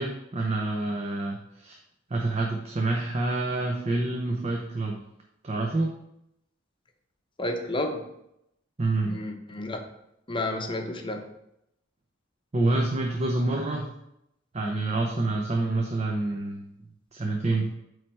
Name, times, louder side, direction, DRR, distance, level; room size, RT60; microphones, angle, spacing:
voice 1, 0.0-1.8 2.1-5.0 5.4-6.0 8.8-9.2 12.5-13.9 14.5-16.7 17.1-17.7, right 2 dB, 35° right, 1 dB, 0.7 m, -27 dB
voice 2, 7.4-8.1 9.1-9.8 10.3-11.2, left 1 dB, 25° left, 4 dB, 0.8 m, -31 dB
8.4 x 3.3 x 4.6 m, 0.81 s
head